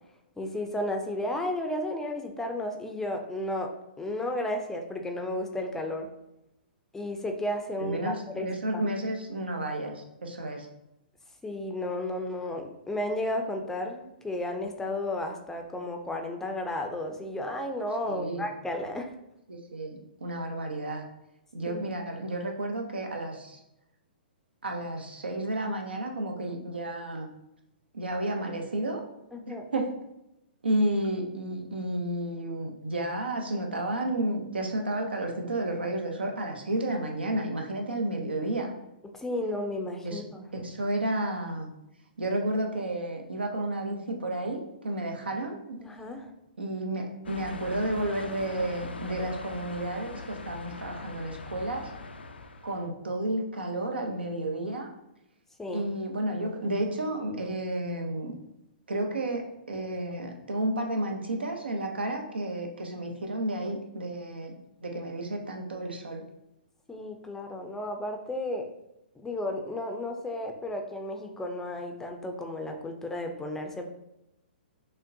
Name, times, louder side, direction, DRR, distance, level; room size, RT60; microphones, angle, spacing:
voice 1, 0.4-3.7 4.0-6.1 6.9-8.5 8.7-8.8 11.4-19.1 21.7-21.8 29.3-29.7 39.1-40.5 45.8-46.3 55.6-55.9 66.9-68.7 69.2-73.9, left 1 dB, 5° left, 4 dB, 0.4 m, -33 dB
voice 2, 7.8-10.7 18.1-18.4 19.5-21.0 21.5-23.6 24.6-27.3 27.9-29.0 29.5-29.9 30.6-38.7 40.0-40.2 40.5-41.7 42.2-45.8 46.6-51.9 52.6-54.9 55.7-58.3 58.9-64.6 64.8-66.2, right 1 dB, 85° right, 3 dB, 0.8 m, -31 dB
sound 1, 47.2-52.9, left 3 dB, 90° left, 0.4 m, -41 dB
6.2 x 2.1 x 2.6 m, 0.87 s
hypercardioid pair, 125°, 5 cm